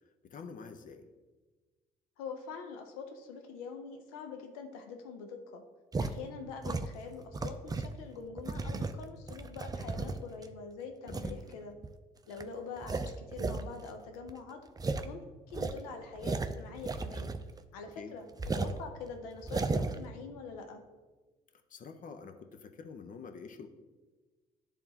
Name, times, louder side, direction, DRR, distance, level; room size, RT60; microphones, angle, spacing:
voice 1, 0.2-1.1 11.1-11.4 18.0-18.2 21.7-23.7, left 5 dB, 50° left, 8 dB, 0.8 m, -47 dB
voice 2, 2.2-5.6 6.0-11.7 12.3-14.6 15.0-15.2 15.5-17.3 17.7-18.3 18.5-20.8, left 5 dB, 85° left, 5 dB, 0.7 m, -44 dB
sound 1, 5.9-6.1 6.6-8.0 8.4-10.4 11.1-11.4 11.8-11.9 12.3-12.4 12.8-13.6 13.9-14.0 14.3-14.4 14.8-15.0 15.5-17.6 17.9-18.0 18.4-18.8 19.4-20.0, right 3 dB, 20° right, 0.5 m, -34 dB
10.5 x 3.5 x 2.9 m, 1.3 s
hypercardioid pair, 55°, 18 cm